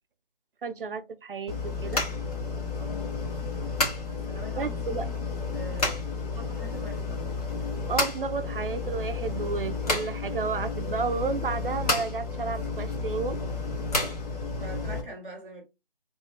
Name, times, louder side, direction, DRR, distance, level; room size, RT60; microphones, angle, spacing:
voice 1, 0.6-2.0 4.6-5.1 7.9-13.4, right 4 dB, 65° right, 0.5 m, -32 dB
sound 1, 1.5-15.0, left 3 dB, 40° left, 1.2 m, -31 dB
voice 2, 2.7-3.1 4.0-5.2 5.5-6.0 6.3-7.2 14.6-15.6, right 1 dB, 5° left, 0.8 m, -43 dB
3.0 x 2.8 x 3.3 m
figure-of-eight pair, 165°, 29 cm